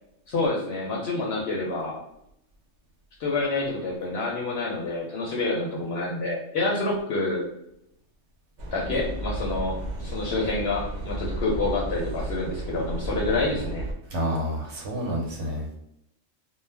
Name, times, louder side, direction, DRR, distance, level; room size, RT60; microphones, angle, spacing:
voice 1, 0.3-2.0 3.2-7.5 8.7-13.8, left 2 dB, 60° left, -2 dB, 0.7 m, -28 dB
sound 1, 8.6-13.9, right 1 dB, 85° right, 0.4 m, -33 dB
voice 2, 14.1-15.7, equal, 65° right, 0 dB, 0.9 m, -29 dB
2.4 x 2.1 x 3.2 m, 0.78 s
omnidirectional pair, 1.4 m